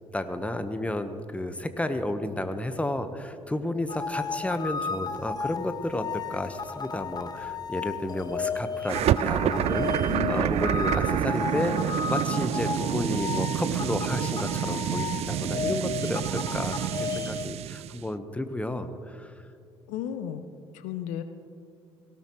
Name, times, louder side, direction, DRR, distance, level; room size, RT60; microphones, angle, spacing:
voice 1, 0.1-6.0 6.3-19.4, left 1 dB, 10° left, 9 dB, 1.2 m, -32 dB
sound 1, 3.9-17.5, left 6 dB, 30° left, 0.8 m, -34 dB
sound 2, 8.9-18.0, right 12 dB, 50° right, 0.4 m, -28 dB
voice 2, 10.1-10.5 19.9-20.4 20.7-21.2, left 9 dB, 70° left, 10 dB, 0.7 m, -33 dB
18.0 x 17.5 x 3.2 m, 2.4 s
figure-of-eight pair, 50°, 14 cm